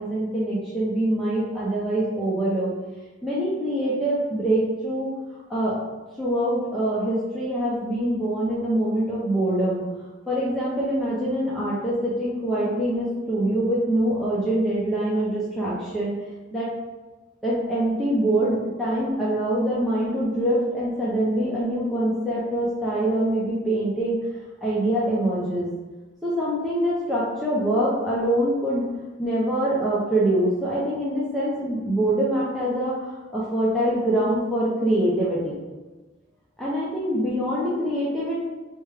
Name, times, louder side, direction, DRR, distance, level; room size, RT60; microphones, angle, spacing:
voice 1, 0.0-2.7 3.2-5.1 5.5-5.7 6.2-9.8 10.3-16.1 16.5-16.7 17.4-24.2 24.6-25.7 26.2-28.9 29.2-35.6 36.6-38.3, right 1 dB, ahead, -8 dB, 0.6 m, -24 dB
4.9 x 2.2 x 3.3 m, 1.2 s
head